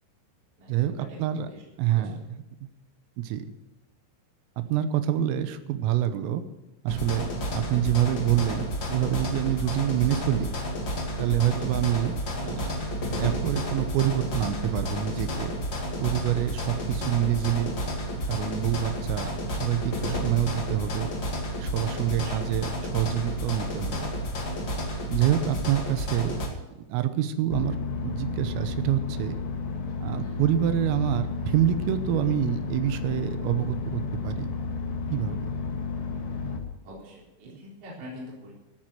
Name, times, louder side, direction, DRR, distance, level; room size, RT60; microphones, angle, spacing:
voice 1, 1.8-2.2 2.6-2.7 3.2-3.5 4.6-6.4 6.9-8.6 8.9-10.5 11.2-12.7 13.2-15.5 16.0-17.7 18.3-21.1 21.6-24.1 25.1-26.3 26.9-29.4 30.0-34.5 35.1-35.4, right 11 dB, 85° right, 10 dB, 3.6 m, -26 dB
sound 1, 6.9-26.5, equal, 40° left, 1.6 m, -31 dB
voice 2, 21.9-22.5 30.2-30.5 36.8-38.5, equal, 40° right, -5 dB, 5.0 m, -44 dB
sound 2, 27.5-36.6, left 4 dB, 65° left, 3.8 m, -32 dB
14.0 x 9.5 x 7.7 m, 1.0 s
omnidirectional pair, 5.9 m